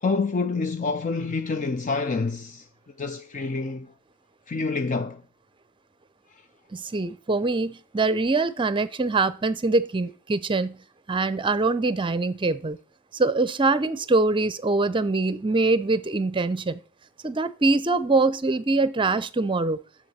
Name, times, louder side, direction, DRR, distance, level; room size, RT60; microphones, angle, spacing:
voice 1, 0.0-2.7 3.0-3.9 4.5-5.2, left 4 dB, 35° left, 0.5 m, -27 dB
voice 2, 6.7-10.8 11.1-12.8 13.1-16.8 17.2-19.8, right 3 dB, 25° right, 0.6 m, -23 dB
7.3 x 7.0 x 7.8 m
head